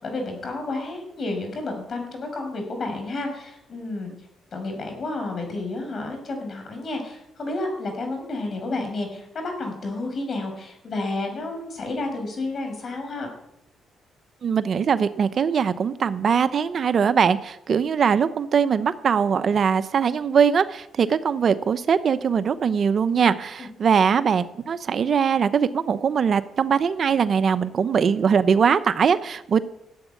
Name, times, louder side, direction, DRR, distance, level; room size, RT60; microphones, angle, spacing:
voice 1, 0.0-4.1 4.5-13.3 23.6-23.7, left 2 dB, 50° left, 4 dB, 6.0 m, -31 dB
voice 2, 14.4-29.6, right 6 dB, 50° right, 13 dB, 0.8 m, -21 dB
14.0 x 8.1 x 9.6 m, 0.80 s
cardioid pair, 90°, 0 cm